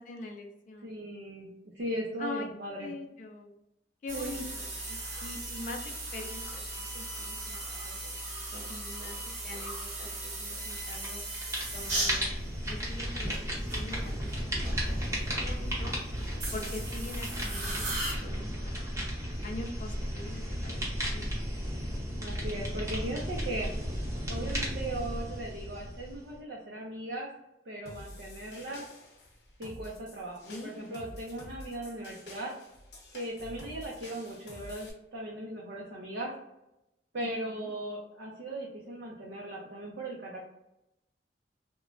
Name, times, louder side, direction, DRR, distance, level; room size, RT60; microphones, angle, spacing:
voice 1, 0.0-0.9 2.2-2.5 2.8-3.5 4.0-5.8 6.1-8.0 8.5-9.2 9.4-10.1 10.4-11.2 11.7-12.3 12.7-15.0 15.4-15.9 16.5-19.0 19.4-21.3 30.5-31.0 32.0-32.1 37.4-37.7, left 2 dB, 45° left, 3 dB, 0.4 m, -44 dB
voice 2, 0.8-1.5 1.7-2.9 4.1-4.4 22.2-23.7 24.2-27.3 27.7-28.9 29.6-30.4 30.6-32.5 33.1-36.3 37.1-40.4, right 1 dB, 85° right, -3 dB, 0.6 m, -38 dB
sound 1, 4.1-18.1, right 2 dB, 45° right, 0.9 m, -38 dB
sound 2, 10.7-11.1 11.3-26.4, equal, 15° right, 0.7 m, -34 dB
sound 3, 27.9-34.9, left 1 dB, 65° left, 0.7 m, -49 dB
3.0 x 2.2 x 2.4 m, 0.87 s
head